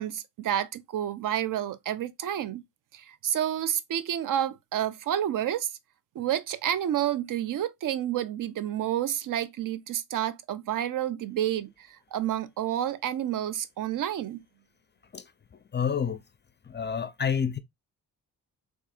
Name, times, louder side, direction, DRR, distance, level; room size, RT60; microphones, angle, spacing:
voice 1, 0.0-2.6 2.9-5.7 6.2-14.4, right 11 dB, 55° right, 0.5 m, -29 dB
voice 2, 15.7-16.2 16.6-17.6, left 7 dB, 30° left, 0.4 m, -28 dB
3.9 x 2.5 x 2.4 m
supercardioid pair, 45°, 39 cm